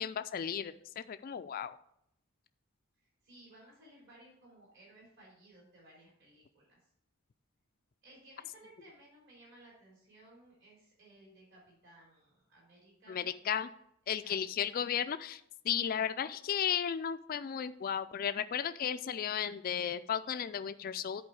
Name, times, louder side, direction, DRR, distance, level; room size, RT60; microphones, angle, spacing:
voice 1, 0.0-1.8 13.1-13.7 14.1-21.2, left 8 dB, 40° left, 10 dB, 0.3 m, -34 dB
voice 2, 3.0-6.8 8.0-13.6 14.2-14.4, right 1 dB, 55° right, -4 dB, 3.7 m, -59 dB
10.5 x 4.4 x 4.8 m, 0.72 s
head